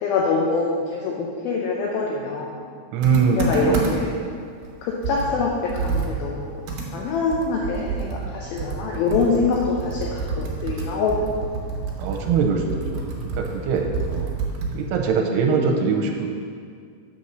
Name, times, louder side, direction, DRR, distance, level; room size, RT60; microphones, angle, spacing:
voice 1, 0.0-2.6 3.4-4.1 4.8-6.7 6.9-11.6, left 4 dB, 75° left, -2 dB, 2.3 m, -25 dB
voice 2, 2.9-3.9 12.0-12.6 12.9-14.3 14.7-16.3, right 5 dB, 85° right, 2 dB, 2.7 m, -22 dB
Computer keyboard, 3.0-4.2 4.6-4.7 5.0-14.9, right 4 dB, 70° right, 2.3 m, -29 dB
8.5 x 4.2 x 6.3 m, 2.2 s
omnidirectional pair, 4.8 m